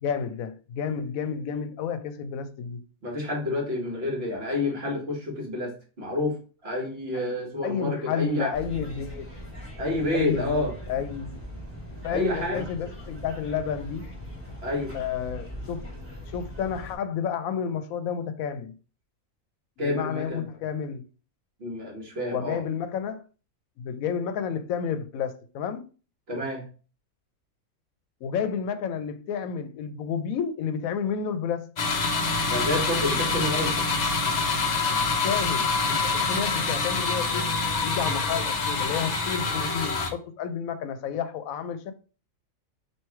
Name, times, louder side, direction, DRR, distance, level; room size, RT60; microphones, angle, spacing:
voice 1, 0.0-2.8 7.6-9.3 10.1-11.5 12.0-14.1 14.9-15.9 16.3-18.8 19.8-21.0 22.2-23.2 23.8-25.9 28.2-31.7 35.2-37.5 37.8-41.9, left 7 dB, 80° left, 1.0 m, -31 dB
voice 2, 3.0-8.6 9.8-10.7 12.1-12.6 14.6-14.9 19.8-20.5 21.6-22.6 26.3-26.6 32.4-33.8, left 1 dB, 45° right, 1.4 m, -29 dB
sound 1, 8.5-17.0, equal, 10° right, 1.3 m, -40 dB
sound 2, 31.8-40.1, left 4 dB, 60° left, 0.4 m, -26 dB
3.1 x 2.9 x 4.4 m
omnidirectional pair, 1.4 m